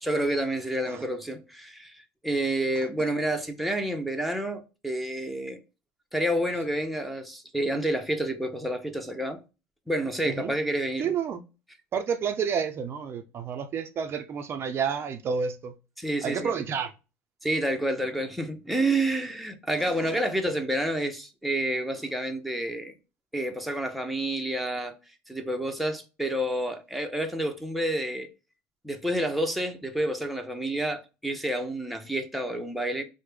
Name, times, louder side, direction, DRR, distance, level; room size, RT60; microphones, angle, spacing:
voice 1, 0.0-5.6 6.1-9.4 9.9-11.1 16.0-16.5 17.4-22.9 23.3-24.9 25.3-28.3 28.8-33.0, right 1 dB, ahead, 0.6 m, -29 dB
voice 2, 11.0-11.4 11.9-15.7 16.2-16.9 20.0-20.2, right 6 dB, 40° right, 0.4 m, -30 dB
3.1 x 2.0 x 3.3 m
supercardioid pair, 100°, 6 cm